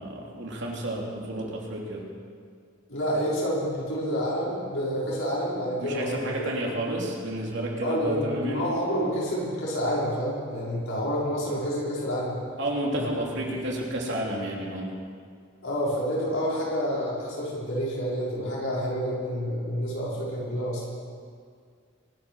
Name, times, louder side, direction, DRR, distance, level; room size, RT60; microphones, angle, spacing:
voice 1, 0.0-2.0 5.8-8.7 12.6-14.9, right 1 dB, 60° right, -2 dB, 3.2 m, -31 dB
voice 2, 2.9-6.3 6.5-6.7 7.8-12.4 13.0-13.1 15.6-20.8, equal, 85° left, -6 dB, 5.4 m, -28 dB
23.5 x 9.0 x 6.3 m, 2.1 s
head